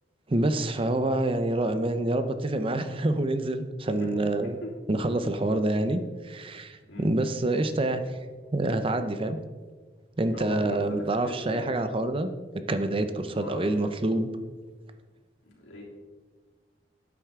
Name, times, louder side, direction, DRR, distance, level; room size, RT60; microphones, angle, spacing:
voice 1, 0.3-4.6 4.9-8.3 8.5-9.4 10.2-12.3 12.7-14.3, right 1 dB, 30° right, 9 dB, 0.6 m, -27 dB
voice 2, 4.4-4.7 6.9-7.1 10.3-11.7 13.2-13.7 15.4-15.8, left 1 dB, 90° left, -3 dB, 3.3 m, -39 dB
12.0 x 9.0 x 3.6 m, 1.4 s
head